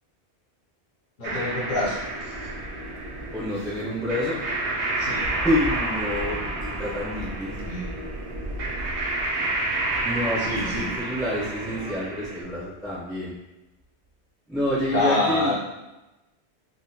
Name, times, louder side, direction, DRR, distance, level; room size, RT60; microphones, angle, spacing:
voice 1, 1.2-2.0 5.0-5.3 7.6-7.9 10.4-10.9 14.9-15.6, left 2 dB, 55° left, -7 dB, 0.7 m, -26 dB
sound 1, 1.2-12.4, right 2 dB, 80° right, 0.9 m, -30 dB
sound 2, 1.7-12.0, right 1 dB, 50° right, 0.6 m, -39 dB
voice 2, 3.3-4.4 5.4-7.7 10.0-13.3 14.5-15.5, left 1 dB, ahead, -8 dB, 0.3 m, -28 dB
3.5 x 2.1 x 2.7 m, 1.0 s
omnidirectional pair, 1.1 m